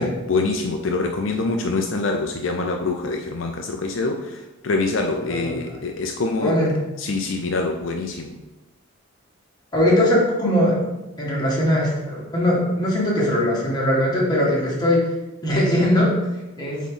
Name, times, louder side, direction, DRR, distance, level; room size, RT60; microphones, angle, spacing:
voice 1, 0.0-6.6 7.0-8.3, left 3 dB, 65° left, 3 dB, 0.5 m, -25 dB
voice 2, 5.2-5.8 6.4-6.7 9.7-10.8 11.2-15.0 15.4-16.1 16.6-16.8, left 1 dB, 20° left, -4 dB, 1.6 m, -20 dB
7.8 x 3.1 x 3.8 m, 1.0 s
head